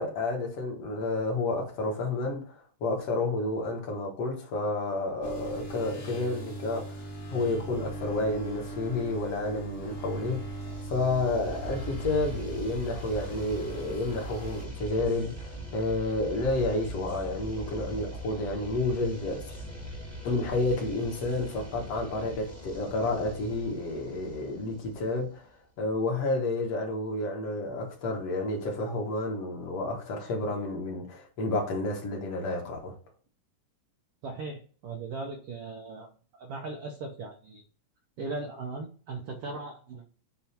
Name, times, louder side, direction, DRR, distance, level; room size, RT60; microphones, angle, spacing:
voice 1, 0.0-7.0 7.3-10.4 10.9-19.6 20.2-25.5 25.8-33.0, left 2 dB, 50° left, 2.5 m, -30 dB
sound 1, 5.2-14.6, right 2 dB, 75° left, 0.7 m, -40 dB
sound 2, 10.7-25.5, right 1 dB, 10° left, 1.1 m, -42 dB
voice 2, 34.2-37.6 38.2-40.0, right 3 dB, 80° right, 1.3 m, -38 dB
8.9 x 3.0 x 4.4 m
omnidirectional pair, 3.8 m